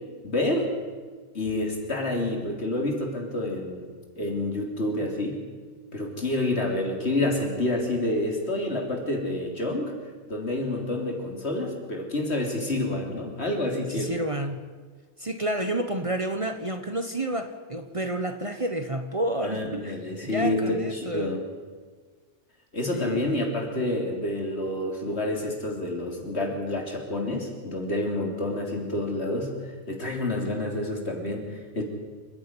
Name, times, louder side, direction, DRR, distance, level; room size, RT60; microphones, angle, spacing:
voice 1, 0.2-0.8 1.3-3.9 4.2-5.4 5.9-9.9 10.3-14.2 19.4-21.4 22.7-31.8, left 1 dB, 65° left, 2 dB, 3.7 m, -28 dB
voice 2, 13.9-14.6 15.2-20.0 20.2-21.4 22.9-23.5, right 1 dB, 30° right, 8 dB, 1.2 m, -30 dB
27.5 x 10.5 x 9.7 m, 1.5 s
omnidirectional pair, 1.2 m